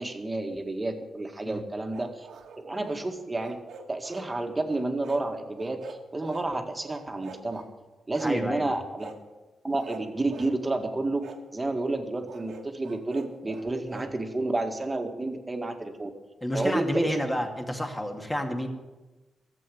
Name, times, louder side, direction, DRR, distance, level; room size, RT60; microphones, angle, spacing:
voice 1, 0.0-2.3 2.6-3.6 3.9-7.6 8.1-9.1 9.6-11.2 11.5-16.1 16.5-17.2, right 2 dB, 20° right, 5 dB, 1.9 m, -30 dB
sound 1, 1.9-3.0 3.4-4.3 4.6-5.3 5.6-6.5 6.8-7.7 8.1-8.4 9.0-9.2 9.7-10.6 11.2-11.4 12.3-14.1, right 5 dB, 85° right, 1.5 m, -45 dB
voice 2, 8.2-8.7 16.4-18.7, equal, 15° left, 3 dB, 2.3 m, -29 dB
14.0 x 7.8 x 9.4 m, 1.2 s
cardioid pair, 80°, 0 cm